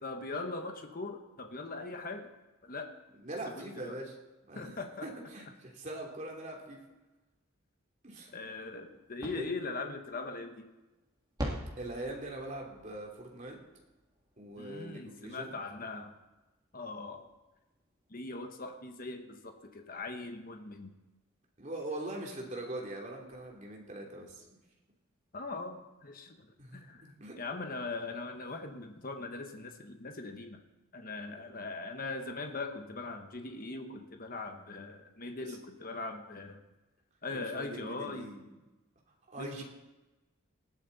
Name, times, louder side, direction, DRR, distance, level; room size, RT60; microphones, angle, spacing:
voice 1, 0.0-2.3 2.6-2.9 3.5-4.0 4.5-5.1 8.3-10.7 14.6-16.1 16.7-17.3 18.1-20.9 25.3-30.6 30.9-36.6 37.2-38.3 39.4-39.6, left 3 dB, 40° left, 5 dB, 1.2 m, -41 dB
voice 2, 3.1-4.1 4.5-6.8 8.0-8.3 9.3-9.4 11.8-13.6 14.4-15.5 21.6-24.6 26.6-27.3 35.4-35.6 37.3-38.5 39.3-39.6, right 1 dB, 35° right, -1 dB, 3.0 m, -42 dB
sound 1, 8.8-21.2 22.4-22.5 22.9-23.0 23.2-24.4, equal, 20° right, 2.5 m, -48 dB
19.0 x 13.5 x 4.1 m, 1.1 s
head